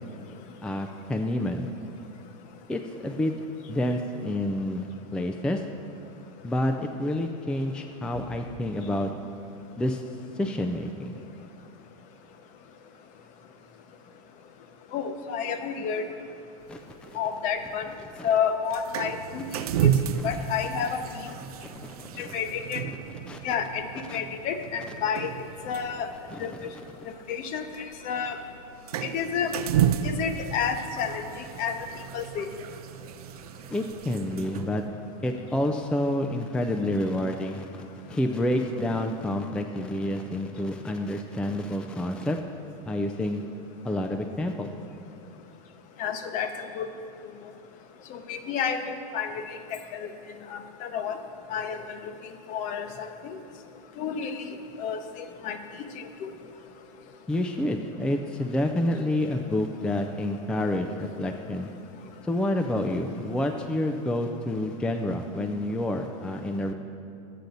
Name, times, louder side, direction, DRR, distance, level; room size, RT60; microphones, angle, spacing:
voice 1, 0.6-1.7 2.7-3.3 3.7-5.6 6.4-9.1 9.8-10.0 10.3-11.2 16.7-16.8 17.1-17.2 18.2-18.3 19.7-19.8 20.2-20.4 21.7-21.9 22.2-22.4 23.3-23.4 24.1-24.2 26.5-26.8 33.7-34.8 35.2-42.4 42.9-43.4 43.8-44.7 57.3-61.7 62.2-66.7, left 1 dB, 5° left, 4 dB, 0.3 m, -28 dB
voice 2, 14.9-16.0 17.1-17.9 18.2-19.4 19.8-20.0 20.2-21.0 22.2-22.8 23.4-23.8 24.1-25.3 25.7-26.1 26.4-26.5 27.3-27.7 28.0-28.4 29.0-29.5 30.0-31.2 31.6-31.8 32.1-32.5 46.0-46.9 48.1-49.6 49.9-50.1 50.5-51.2 51.5-51.8 52.5-53.4 54.0-54.5 54.8-55.0 55.4-55.6 55.9-56.3, left 7 dB, 40° left, 8 dB, 0.8 m, -30 dB
sound 1, 16.6-34.9, right 9 dB, 80° right, 0.5 m, -33 dB
11.5 x 8.3 x 3.9 m, 2.5 s
supercardioid pair, 130°, 19 cm